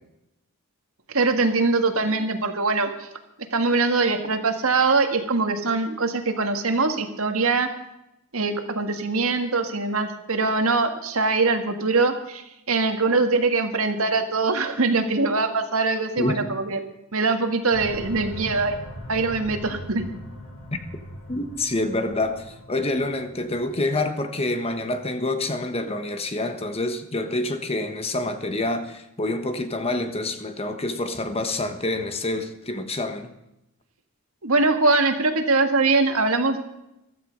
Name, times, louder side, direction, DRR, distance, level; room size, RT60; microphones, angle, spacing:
voice 1, 1.1-3.1 3.5-7.7 8.3-16.8 17.1-18.8 19.1-20.1 34.4-36.6, right 3 dB, 70° right, 6 dB, 1.9 m, -22 dB
sound 1, 17.7-24.0, equal, 70° left, 5.7 m, -40 dB
voice 2, 21.3-33.3, left 2 dB, 25° left, 8 dB, 1.3 m, -27 dB
15.0 x 13.5 x 5.3 m, 0.85 s
head